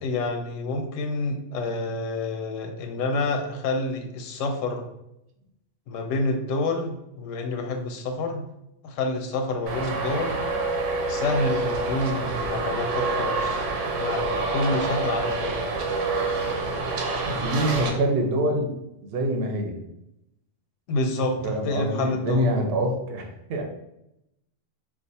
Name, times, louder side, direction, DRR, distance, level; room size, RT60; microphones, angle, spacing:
voice 1, 0.0-4.8 5.9-8.4 8.8-10.3 11.1-13.6 14.0-15.7 20.9-22.5, left 2 dB, 90° left, 4 dB, 0.9 m, -28 dB
Traffic noise roadway noise, 9.7-17.9, right 3 dB, 80° right, 1.0 m, -27 dB
voice 2, 17.3-18.7 19.0-19.8 21.4-23.6, right 1 dB, 60° right, 2 dB, 0.8 m, -25 dB
2.4 x 2.4 x 3.9 m, 0.83 s
omnidirectional pair, 1.3 m